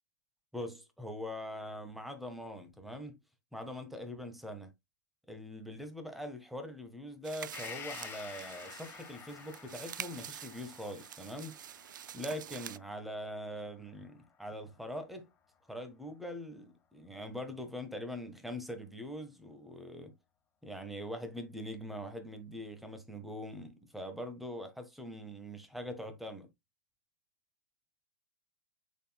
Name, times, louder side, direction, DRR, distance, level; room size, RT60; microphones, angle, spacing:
voice 1, 0.5-3.2 3.5-4.7 5.3-11.6 12.1-15.3 15.7-20.1 20.6-26.5, equal, ahead, 1.3 m, -42 dB
sound 1, 7.2-12.8, right 10 dB, 65° right, 0.4 m, -47 dB
Gong, 7.5-15.2 15.5-15.6, left 8 dB, 20° left, 1.5 m, -51 dB
10.0 x 4.2 x 2.2 m
hypercardioid pair, 115°, 11 cm